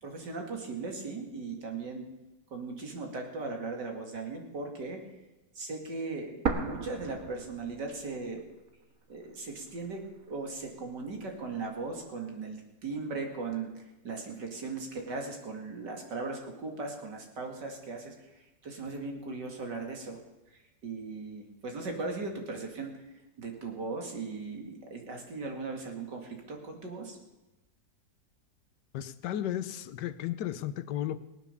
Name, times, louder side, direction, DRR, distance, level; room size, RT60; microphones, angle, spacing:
voice 1, 0.0-2.1 2.5-5.0 5.5-8.4 9.1-20.2 20.5-23.1 23.4-27.2, right 3 dB, 75° right, 2 dB, 3.0 m, -38 dB
sound 1, 6.5-8.4 8.7-8.8 9.5-10.5, right 5 dB, 55° right, 1.7 m, -35 dB
voice 2, 28.9-31.2, left 12 dB, 80° left, 13 dB, 1.3 m, -34 dB
18.5 x 9.2 x 7.0 m, 1.0 s
omnidirectional pair, 1.9 m